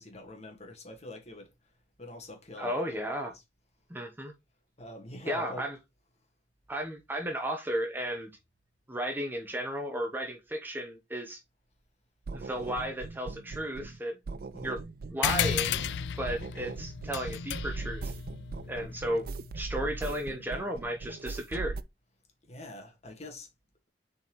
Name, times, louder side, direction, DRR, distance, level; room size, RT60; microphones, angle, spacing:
voice 1, 0.0-1.5 2.0-2.8 3.3-3.4 4.8-5.7 14.5-14.8 22.5-23.5, left 1 dB, 40° left, 1.8 m, -44 dB
voice 2, 2.6-3.3 3.9-4.3 5.3-5.8 6.7-8.3 8.9-11.4 12.3-14.2 14.6-14.8 15.1-15.8 16.2-18.1 18.7-19.2 19.6-21.8, right 1 dB, 10° right, 1.0 m, -34 dB
sound 1, 12.3-14.0 14.3-16.0 16.3-21.8, right 3 dB, 55° right, 0.4 m, -40 dB
sound 2, 15.2-20.1, left 8 dB, 75° left, 0.4 m, -34 dB
7.2 x 4.4 x 3.1 m
head